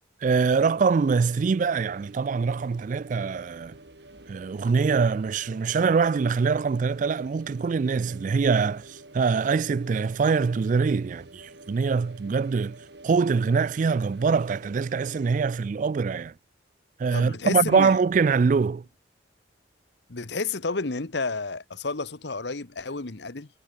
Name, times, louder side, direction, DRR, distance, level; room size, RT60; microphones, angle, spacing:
voice 1, 0.2-3.8 4.3-12.8 13.0-16.3 17.0-18.8, right 5 dB, 40° right, 0.3 m, -24 dB
sound 1, 0.7-15.5, right 1 dB, 60° right, 3.9 m, -49 dB
voice 2, 17.1-18.0 20.1-23.5, left 4 dB, 65° left, 1.2 m, -31 dB
head